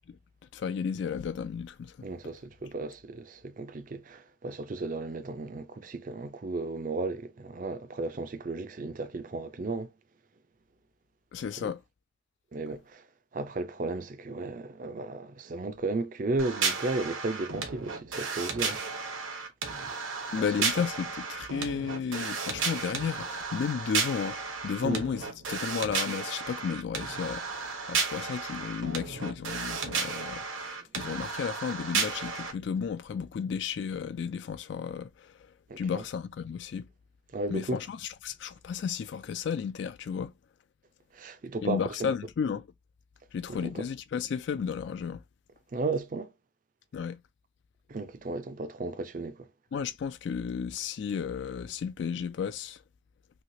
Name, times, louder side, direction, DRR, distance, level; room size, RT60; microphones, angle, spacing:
voice 1, 0.5-1.9 11.3-11.8 20.3-35.4 35.8-36.9 37.5-40.3 41.6-42.7 43.3-45.2 46.9-47.2 49.7-52.8, left 6 dB, 65° left, 0.3 m, -33 dB
voice 2, 2.0-9.9 11.6-11.7 12.5-13.1 13.3-18.9 20.6-20.7 24.8-25.0 35.7-36.0 37.3-37.8 41.1-41.8 43.5-43.9 45.7-46.3 47.9-49.5, right 3 dB, 45° right, 0.4 m, -34 dB
sound 1, 16.4-32.5, right 5 dB, 90° right, 1.0 m, -33 dB
3.2 x 2.8 x 2.6 m
head